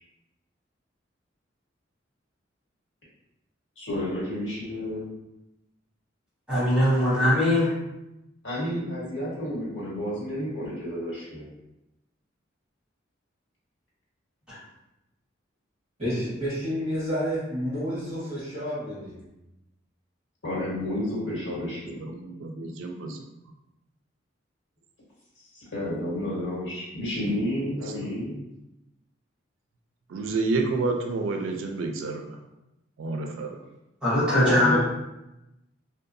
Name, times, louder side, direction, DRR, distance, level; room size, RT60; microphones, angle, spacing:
voice 1, 3.8-5.1 8.4-11.5 20.4-22.1 25.5-28.3 34.4-34.8, left 1 dB, 75° left, -6 dB, 1.2 m, -31 dB
voice 2, 6.5-7.7 34.0-34.8, left 1 dB, 5° right, -11 dB, 1.2 m, -21 dB
voice 3, 16.0-19.2, equal, 35° right, -13 dB, 1.2 m, -30 dB
voice 4, 22.0-23.2 28.0-28.1 30.1-32.4 33.0-33.6, right 3 dB, 90° right, 3 dB, 0.4 m, -29 dB
2.7 x 2.2 x 2.5 m, 0.94 s
head